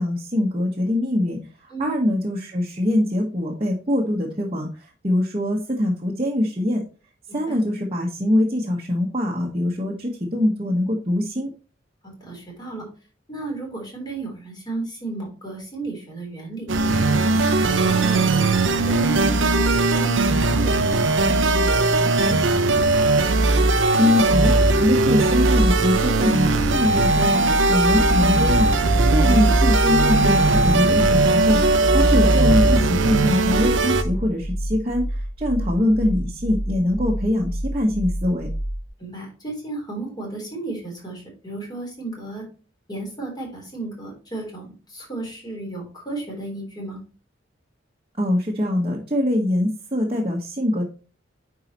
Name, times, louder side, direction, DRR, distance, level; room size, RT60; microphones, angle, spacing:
voice 1, 0.0-1.4 1.8-4.7 5.0-6.8 7.3-11.5 24.0-24.5 24.8-31.6 31.9-35.0 35.4-38.5 48.2-50.8, left 1 dB, 30° right, -4 dB, 1.3 m, -23 dB
voice 2, 12.0-12.9 13.3-18.4 18.9-22.8 29.0-29.2 32.2-32.3 39.0-42.4 42.9-47.0, right 2 dB, 25° left, -1 dB, 3.7 m, -34 dB
sound 1, 16.7-34.0, right 2 dB, 85° right, 0.8 m, -18 dB
sound 2, 25.8-38.9, right 1 dB, 50° left, 3.8 m, -29 dB
9.4 x 4.8 x 3.0 m, 0.35 s
head